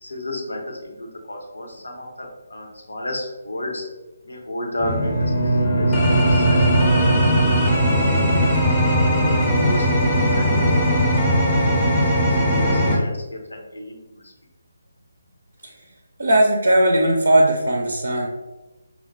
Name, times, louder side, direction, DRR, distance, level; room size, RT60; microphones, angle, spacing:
voice 1, 0.0-3.9 4.2-8.1 8.4-8.6 9.2-10.9 11.3-14.3, left 1 dB, 70° left, 1 dB, 0.7 m, -33 dB
Bowed string instrument, 4.8-8.4, right 3 dB, 85° left, 1.3 m, -22 dB
sound 1, 4.8-13.0, equal, 15° left, 0.5 m, -19 dB
voice 2, 16.2-18.3, right 1 dB, 65° right, 1 dB, 0.4 m, -18 dB
4.3 x 2.1 x 2.6 m, 1.1 s
figure-of-eight pair, 145°, 0 cm